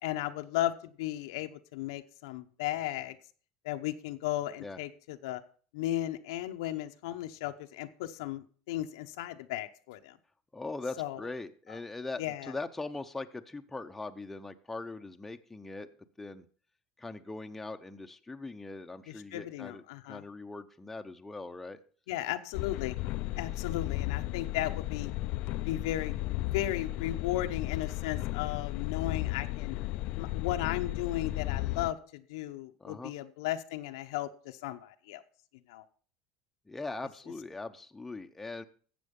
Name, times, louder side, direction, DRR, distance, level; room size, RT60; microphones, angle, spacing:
voice 1, 0.0-3.2 3.6-5.4 5.7-10.2 11.0-11.2 12.2-12.5 19.1-20.2 22.1-23.0 23.4-25.1 25.6-26.2 26.4-29.8 30.2-35.2 35.7-35.8, left 14 dB, 85° left, 7 dB, 0.9 m, -35 dB
voice 2, 10.5-15.9 16.2-16.4 17.0-19.8 20.1-21.8 32.8-33.1 36.7-38.6, left 3 dB, 10° left, 6 dB, 0.8 m, -41 dB
sound 1, 22.5-31.9, left 17 dB, 60° left, 0.5 m, -34 dB
12.5 x 7.7 x 5.3 m, 0.43 s
supercardioid pair, 130°, 2 cm